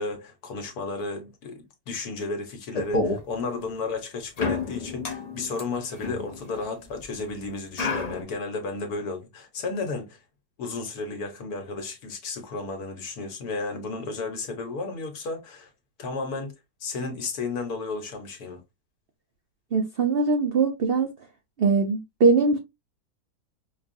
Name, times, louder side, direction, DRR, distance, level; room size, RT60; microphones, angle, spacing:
voice 1, 0.0-10.2 10.6-15.7 16.0-16.5 16.8-18.6, left 3 dB, 65° left, 1.5 m, -33 dB
sound 1, 2.7-3.2 4.4-7.0 7.8-8.2, left 3 dB, 50° left, 0.4 m, -29 dB
voice 2, 19.7-21.1 21.6-22.6, right 4 dB, 70° right, 0.5 m, -21 dB
5.2 x 2.3 x 2.5 m
omnidirectional pair, 1.8 m